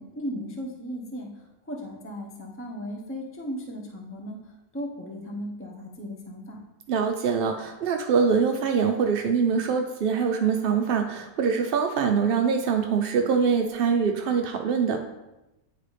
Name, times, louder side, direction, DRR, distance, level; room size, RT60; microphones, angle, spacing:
voice 1, 0.0-6.6, equal, 10° left, 0 dB, 0.7 m, -36 dB
voice 2, 6.9-15.0, right 6 dB, 70° right, 4 dB, 0.5 m, -24 dB
9.5 x 4.0 x 3.2 m, 0.97 s
omnidirectional pair, 1.5 m